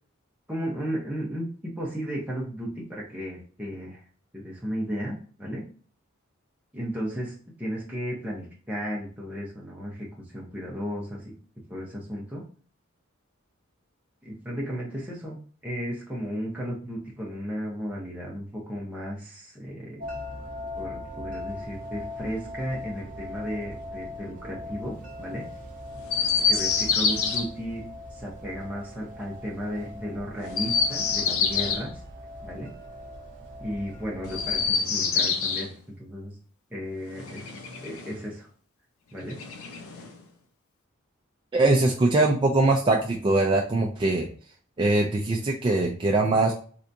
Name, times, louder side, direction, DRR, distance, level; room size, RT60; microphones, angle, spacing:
voice 1, 0.5-4.0 4.3-5.6 6.7-11.3 11.7-12.4 14.2-15.4 15.6-20.1 20.7-25.5 25.9-26.0 26.5-27.8 28.1-31.9 32.4-32.7 33.6-36.3 36.7-37.5 37.8-38.5 39.1-39.4, equal, 5° right, -5 dB, 0.7 m, -34 dB
sound 1, 20.0-34.7, left 1 dB, 40° right, 0.9 m, -40 dB
Chirp tweet, 26.1-27.4 30.4-31.8 34.2-35.7 37.1-38.2 39.3-40.2, left 5 dB, 85° left, 0.6 m, -26 dB
voice 2, 41.5-44.3 44.8-46.5, right 2 dB, 25° right, -1 dB, 0.3 m, -22 dB
3.3 x 2.7 x 2.6 m, 0.43 s
head